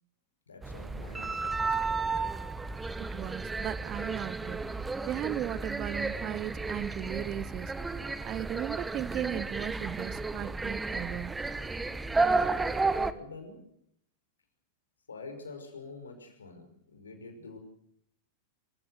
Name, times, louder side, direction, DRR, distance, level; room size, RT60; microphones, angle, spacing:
voice 1, 0.5-2.1 12.9-13.7 15.1-17.6, left 3 dB, 70° left, 5.6 m, -46 dB
sound 1, 0.6-13.1, right 3 dB, 10° right, 1.2 m, -32 dB
voice 2, 3.0-4.7 5.0-7.7 8.2-11.4, right 12 dB, 35° right, 0.9 m, -36 dB
26.0 x 16.0 x 7.9 m
figure-of-eight pair, 90°, 0 cm